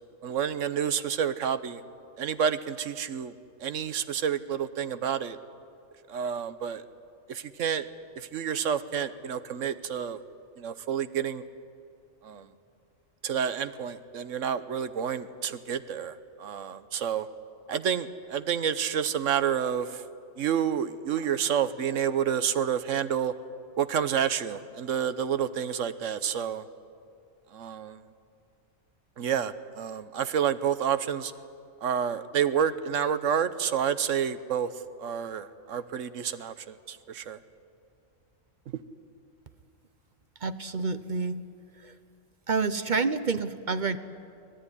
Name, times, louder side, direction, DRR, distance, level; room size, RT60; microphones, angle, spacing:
voice 1, 0.2-1.8 2.2-3.3 3.6-5.4 6.1-6.8 7.3-7.9 8.2-10.2 10.6-11.4 12.2-12.5 13.2-17.3 17.7-20.0 20.4-23.3 23.8-26.6 27.5-28.0 29.2-31.3 31.8-34.7 35.0-37.4 38.7-38.8, right 8 dB, 75° right, 13 dB, 1.2 m, -29 dB
voice 2, 40.4-41.4 41.8-41.9 42.5-44.0, right 4 dB, 40° right, 11 dB, 0.8 m, -28 dB
24.5 x 17.5 x 9.9 m, 2.4 s
omnidirectional pair, 1.4 m